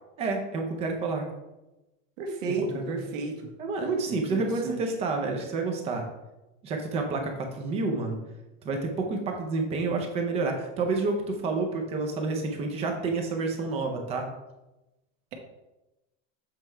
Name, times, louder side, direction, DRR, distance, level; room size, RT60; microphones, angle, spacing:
voice 1, 0.2-1.3 2.5-3.0 3.6-6.0 6.6-8.2 8.6-14.3, right 3 dB, 15° right, 3 dB, 0.5 m, -29 dB
voice 2, 2.2-3.5 4.1-4.8, right 4 dB, 75° right, 2 dB, 1.4 m, -33 dB
7.5 x 4.6 x 3.3 m, 0.99 s
supercardioid pair, 175°, 39 cm